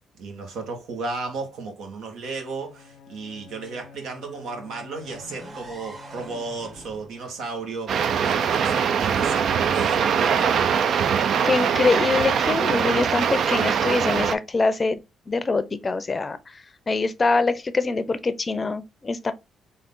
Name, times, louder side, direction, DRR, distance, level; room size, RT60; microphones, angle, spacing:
voice 1, 0.2-10.6 11.4-11.8, right 3 dB, 80° right, 1.3 m, -34 dB
Bowed string instrument, 2.6-6.8, left 6 dB, 80° left, 0.6 m, -48 dB
sound 1, 5.0-8.9, right 2 dB, 40° right, 1.7 m, -45 dB
sound 2, 7.9-14.4, right 7 dB, 65° right, 0.4 m, -22 dB
voice 2, 11.4-15.0 15.3-16.5 16.9-19.3, left 3 dB, 30° left, 0.5 m, -24 dB
3.7 x 2.7 x 3.6 m
cardioid pair, 90°, 0 cm